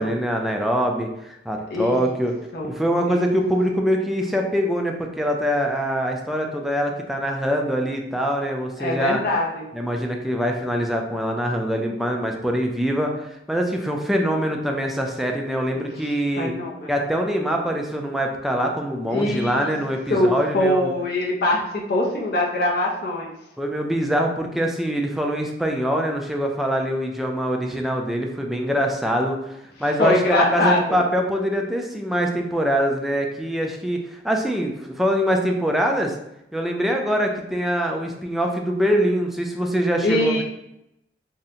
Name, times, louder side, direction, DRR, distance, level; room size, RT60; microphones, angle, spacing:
voice 1, 0.0-2.3 2.6-9.2 9.7-16.5 16.9-20.9 23.6-36.2 36.5-40.4, equal, ahead, 1 dB, 0.3 m, -24 dB
voice 2, 1.7-2.0 2.5-2.7 3.1-3.2 8.8-9.7 15.7-15.8 16.4-16.9 19.1-19.7 20.1-23.3 30.0-31.0 40.0-40.4, left 1 dB, 60° left, -2 dB, 0.5 m, -22 dB
3.7 x 2.1 x 2.7 m, 0.83 s
head